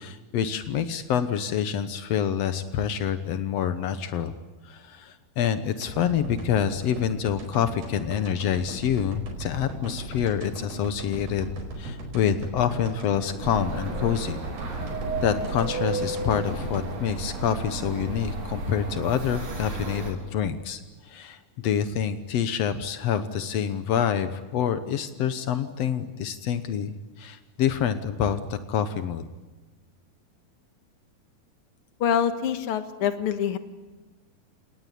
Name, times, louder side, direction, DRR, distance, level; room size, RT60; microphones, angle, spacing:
voice 1, 0.0-4.3 4.6-14.4 15.2-29.2, left 8 dB, 90° left, 11 dB, 1.4 m, -27 dB
sound 1, 5.8-18.0 18.4-18.5, right 2 dB, 70° right, 6.6 m, -38 dB
sound 2, 13.4-20.1, right 2 dB, 45° right, 4.5 m, -33 dB
voice 2, 32.0-33.6, left 8 dB, 60° left, 9 dB, 1.5 m, -25 dB
30.0 x 18.5 x 10.0 m, 1.2 s
omnidirectional pair, 4.4 m